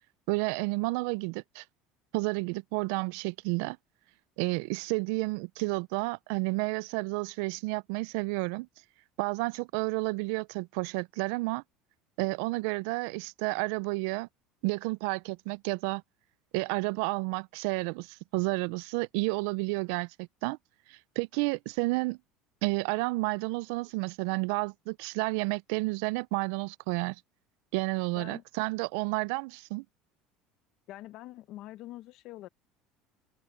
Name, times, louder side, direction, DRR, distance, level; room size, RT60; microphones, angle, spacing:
voice 1, 0.3-1.6 2.1-3.8 4.4-8.7 9.2-11.6 12.2-14.3 14.6-16.0 16.5-20.6 20.9-22.2 22.6-27.2 27.7-29.8, right 26 dB, 80° right, 0.4 m, -31 dB
voice 2, 28.1-28.4 30.9-32.5, left 15 dB, 60° left, 0.9 m, -45 dB
cardioid pair, 130°, 0 cm